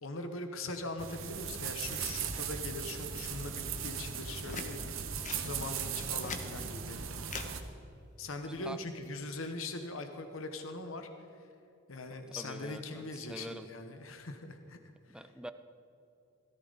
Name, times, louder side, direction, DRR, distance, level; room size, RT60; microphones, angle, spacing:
voice 1, 0.0-4.8 5.3-7.0 8.2-11.1 11.9-14.8 15.2-15.3, left 2 dB, 90° left, 6 dB, 1.1 m, -41 dB
sound 1, 1.0-7.6, right 7 dB, 85° right, 1.1 m, -38 dB
sound 2, 4.4-4.7 5.2-5.5 6.0-6.5 7.3-7.5 8.8-9.1, left 4 dB, 40° left, 1.1 m, -41 dB
voice 2, 8.4-8.8 12.4-13.7 15.1-15.5, right 1 dB, 5° right, 10 dB, 0.5 m, -45 dB
17.0 x 14.0 x 4.0 m, 2.8 s
head